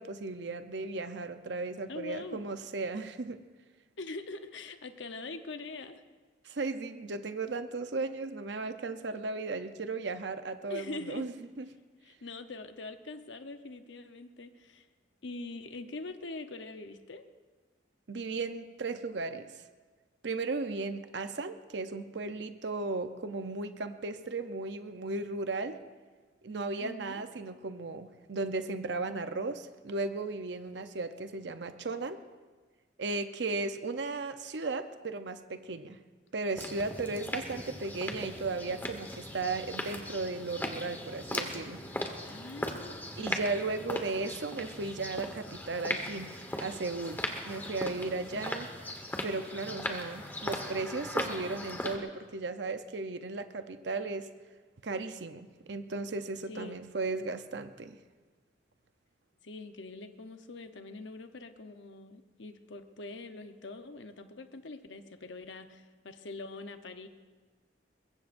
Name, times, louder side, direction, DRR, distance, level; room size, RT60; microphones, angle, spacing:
voice 1, 0.0-3.4 6.4-11.3 11.6-11.7 18.1-19.7 20.2-25.8 26.4-32.2 33.0-36.0 36.3-41.8 43.2-48.7 49.2-54.3 54.8-58.0, right 3 dB, 75° right, 9 dB, 0.7 m, -36 dB
voice 2, 1.9-2.5 4.0-6.0 10.7-11.3 12.0-14.9 15.2-17.3 26.8-27.2 42.2-43.0 48.3-48.6 56.5-56.8 59.4-67.1, left 3 dB, 85° left, 7 dB, 0.9 m, -43 dB
sound 1, 36.5-52.0, left 1 dB, 10° left, 1.2 m, -38 dB
23.0 x 21.0 x 2.6 m, 1.4 s
head